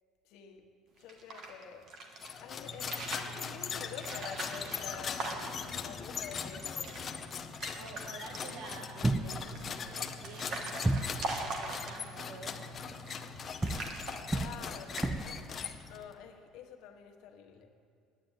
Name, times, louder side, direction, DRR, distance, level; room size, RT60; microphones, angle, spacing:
voice 1, 0.2-0.6 1.0-1.8 2.4-6.9 14.3-15.2 15.8-17.7, left 7 dB, 70° left, 3 dB, 1.3 m, -47 dB
sound 1, 1.0-2.3 2.7-3.4 4.0-5.8 6.2-6.3 6.5-7.0 7.3-8.0 8.3-8.9 9.5-12.3 12.9-13.3 13.6-14.7 15.0-15.3, right 2 dB, 50° right, 1.5 m, -41 dB
sound 2, 2.2-16.1, left 6 dB, 30° left, 0.7 m, -40 dB
voice 2, 7.7-12.8, right 4 dB, 75° right, 3 dB, 1.9 m, -49 dB
sound 3, 9.0-9.7 10.8-11.3 13.6-15.5, right 2 dB, 10° right, 0.5 m, -32 dB
9.6 x 9.4 x 9.0 m, 2.4 s
cardioid pair, 150°, 0 cm